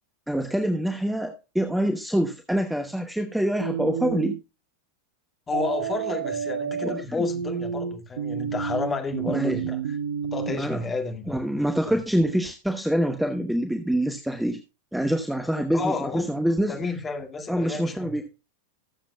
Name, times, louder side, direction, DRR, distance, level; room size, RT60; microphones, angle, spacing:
voice 1, 0.3-4.4 6.8-7.3 9.3-9.6 10.5-10.8 11.3-14.6 14.9-16.8 17.5-18.3, equal, 5° right, 1.1 m, -25 dB
sound 1, 3.6-4.4 5.5-10.6, right 8 dB, 55° right, 0.7 m, -30 dB
voice 2, 5.5-9.8 10.3-11.4 11.9-12.0 15.7-16.2 16.7-18.1, left 4 dB, 20° left, 2.2 m, -31 dB
20.0 x 7.4 x 2.3 m
figure-of-eight pair, 90°, 0 cm